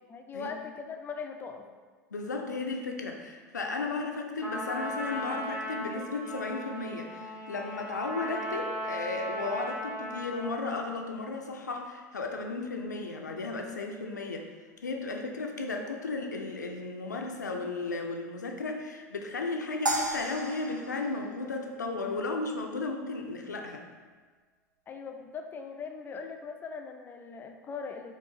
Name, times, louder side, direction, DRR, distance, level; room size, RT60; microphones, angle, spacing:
voice 1, 0.1-1.7 24.9-28.1, left 5 dB, 20° left, 5 dB, 0.4 m, -40 dB
voice 2, 2.1-14.5 14.8-23.8, left 3 dB, 80° left, 3 dB, 0.4 m, -34 dB
Trumpet, 4.4-10.6, equal, 10° right, 0.8 m, -37 dB
sound 1, 19.9-22.2, right 1 dB, 80° right, 0.4 m, -34 dB
4.6 x 2.4 x 3.8 m, 1.4 s
figure-of-eight pair, 85°, 9 cm